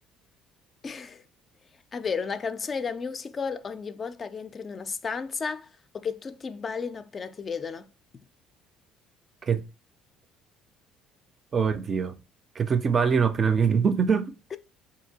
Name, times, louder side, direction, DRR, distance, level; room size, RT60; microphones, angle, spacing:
voice 1, 0.8-1.2 1.9-5.7 5.9-7.9 14.5-14.6, left 5 dB, 35° left, 0.3 m, -33 dB
voice 2, 11.5-12.2 12.6-14.3, right 6 dB, 40° right, 0.4 m, -23 dB
3.6 x 2.7 x 2.7 m
supercardioid pair, 80°, 0 cm